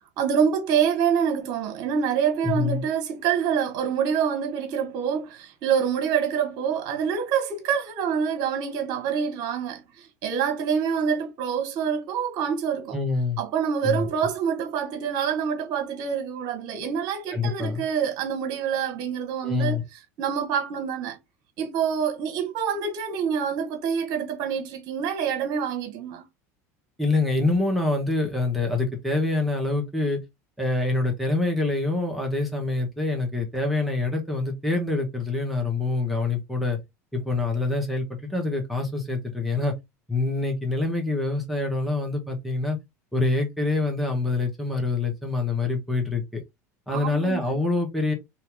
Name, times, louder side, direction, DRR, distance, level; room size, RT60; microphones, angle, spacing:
voice 1, 0.2-13.0 13.4-19.8 20.2-21.2 21.6-26.2 46.9-47.6, right 7 dB, 55° right, 1.2 m, -26 dB
voice 2, 2.4-2.8 12.9-13.4 13.8-14.1 17.3-17.8 19.4-19.8 27.0-30.2 30.6-36.8 37.1-39.7 40.1-42.8 43.1-46.4 46.9-48.1, left 3 dB, ahead, 1.3 m, -25 dB
2.9 x 2.8 x 3.7 m
hypercardioid pair, 85°, 8 cm